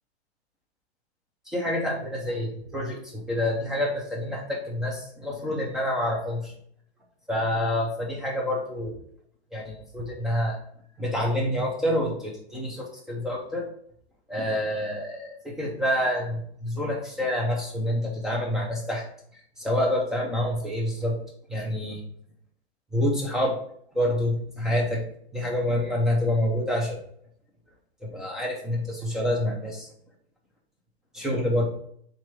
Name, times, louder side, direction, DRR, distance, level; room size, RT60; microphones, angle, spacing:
voice 1, 1.5-6.5 7.3-9.0 9.5-10.6 11.0-13.7 14.3-19.0 19.6-21.2 21.5-22.0 22.9-23.6 23.9-25.0 25.3-27.0 28.0-29.9 31.1-31.7, left 1 dB, ahead, -2 dB, 0.4 m, -27 dB
3.7 x 3.0 x 4.7 m, 0.64 s
hypercardioid pair, 150°, 33 cm